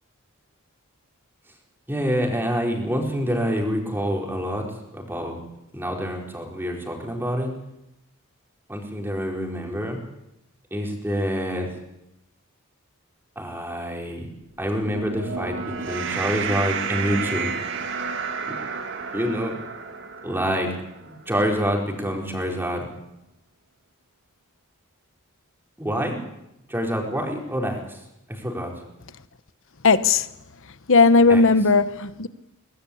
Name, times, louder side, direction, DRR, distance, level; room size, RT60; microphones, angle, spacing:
voice 1, 1.9-4.7 4.9-5.4 5.7-7.5 8.7-10.0 10.7-11.7 13.4-14.3 14.6-17.5 19.1-19.6 20.2-22.9 25.8-26.2 26.7-28.0 28.3-28.7 31.3-31.4, equal, 10° right, 4.4 m, -27 dB
sound 1, 14.6-21.2, right 5 dB, 60° right, 2.0 m, -31 dB
voice 2, 29.8-30.3 30.9-32.3, left 4 dB, 60° left, 1.0 m, -16 dB
23.5 x 19.5 x 8.6 m
head